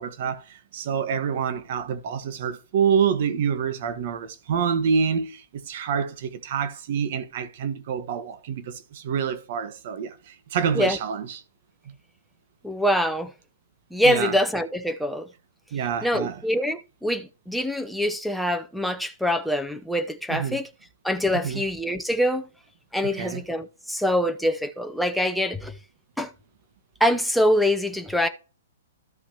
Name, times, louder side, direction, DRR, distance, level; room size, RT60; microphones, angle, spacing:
voice 1, 0.0-11.4 14.0-14.4 15.7-16.4 20.3-20.6 21.4-21.6 23.2-23.4, right 7 dB, 55° right, 1.3 m, -27 dB
voice 2, 12.6-13.3 13.9-15.3 16.0-20.7 21.0-22.5 22.9-25.8 26.2-26.3 27.0-28.3, equal, ahead, 0.7 m, -24 dB
13.5 x 5.7 x 2.9 m
hypercardioid pair, 135°, 0 cm